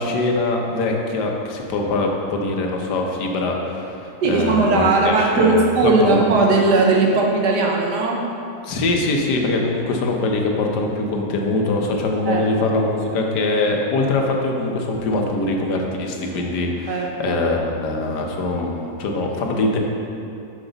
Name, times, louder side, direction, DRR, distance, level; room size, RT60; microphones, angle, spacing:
voice 1, 0.0-6.2 8.6-19.8, left 2 dB, 80° left, 1 dB, 1.4 m, -23 dB
voice 2, 4.2-8.3 12.3-12.8 16.9-17.4, right 3 dB, 80° right, 0 dB, 1.5 m, -18 dB
7.4 x 6.1 x 3.9 m, 2.6 s
omnidirectional pair, 1.8 m